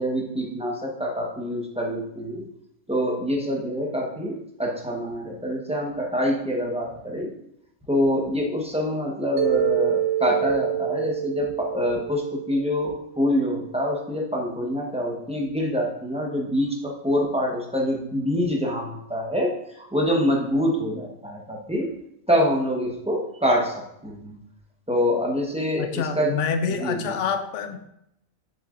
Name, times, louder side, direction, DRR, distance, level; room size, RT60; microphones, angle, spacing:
voice 1, 0.0-2.4 2.9-7.3 7.9-21.9 22.3-24.4 24.9-26.4 26.8-27.1, equal, 5° right, -2 dB, 1.0 m, -25 dB
Mallet percussion, 9.4-13.5, right 12 dB, 80° right, 1.0 m, -27 dB
voice 2, 25.8-27.8, left 6 dB, 70° left, 7 dB, 1.0 m, -27 dB
7.3 x 6.8 x 2.5 m, 0.77 s
omnidirectional pair, 1.3 m